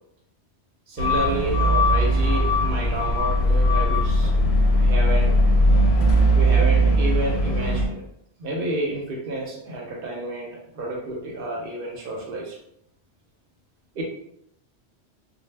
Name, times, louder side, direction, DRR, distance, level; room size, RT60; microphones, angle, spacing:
voice 1, 0.9-4.4 4.8-5.4 6.3-8.0 8.4-12.6 14.0-14.1, right 2 dB, 60° right, -1 dB, 0.6 m, -30 dB
sound 1, 1.0-7.9, equal, 70° left, 0.8 m, -19 dB
2.0 x 2.0 x 3.2 m, 0.75 s
omnidirectional pair, 1.2 m